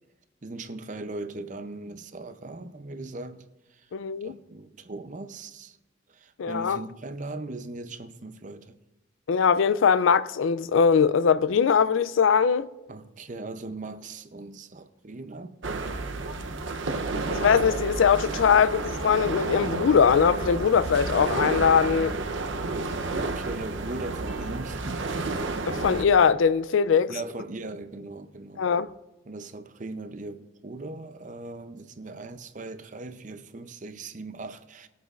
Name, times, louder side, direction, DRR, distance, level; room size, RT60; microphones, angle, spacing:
voice 1, 0.4-3.9 4.2-5.8 6.1-8.8 12.9-16.2 23.2-25.1 27.1-28.7 29.3-34.9, right 2 dB, 40° right, 0.6 m, -39 dB
voice 2, 3.9-4.3 6.4-6.8 9.3-12.7 17.3-22.1 25.7-27.1 28.6-28.9, left 6 dB, 75° left, 0.4 m, -21 dB
sound 1, 15.6-26.0, right 3 dB, 70° right, 0.8 m, -31 dB
20.0 x 8.1 x 2.5 m
head